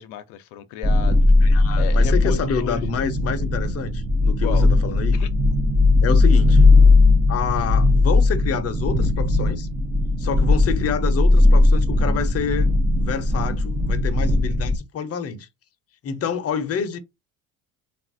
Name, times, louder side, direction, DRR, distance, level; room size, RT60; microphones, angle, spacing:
voice 1, 0.0-2.8 4.4-4.7 5.1-5.3, left 11 dB, 85° left, 0.5 m, -34 dB
sound 1, 0.8-14.8, left 2 dB, 20° right, 0.5 m, -18 dB
voice 2, 1.4-5.2 6.0-6.7 7.3-9.7 10.2-12.7 13.0-15.5 16.0-17.0, left 7 dB, 40° left, 0.6 m, -28 dB
3.2 x 2.4 x 2.5 m
cardioid pair, 100°, 39 cm